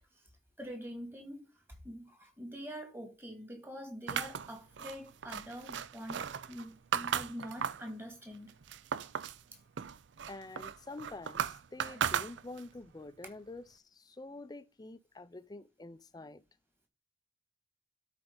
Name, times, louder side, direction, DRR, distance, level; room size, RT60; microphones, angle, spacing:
voice 1, 0.6-1.4 1.8-8.6, equal, 10° right, 2.0 m, -45 dB
sound 1, 4.1-7.9 8.3-9.4 9.8-12.8, right 8 dB, 65° right, 0.5 m, -36 dB
voice 2, 10.3-16.4, left 2 dB, 20° left, 0.5 m, -47 dB
12.5 x 4.5 x 3.9 m
head